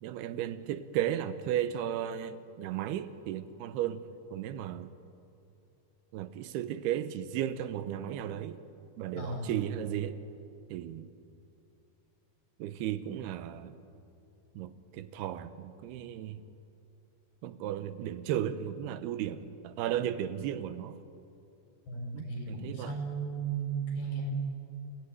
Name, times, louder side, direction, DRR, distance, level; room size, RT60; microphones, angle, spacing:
voice 1, 0.0-4.0 4.3-4.9 6.1-8.6 9.0-10.2 10.7-11.1 12.6-13.8 14.5-16.4 17.4-21.0 22.1-23.0, right 11 dB, 85° right, 12 dB, 2.9 m, -35 dB
voice 2, 9.2-9.5 21.9-24.4, right 4 dB, 80° left, 0 dB, 7.4 m, -35 dB
29.5 x 17.0 x 9.5 m, 2.7 s
omnidirectional pair, 4.5 m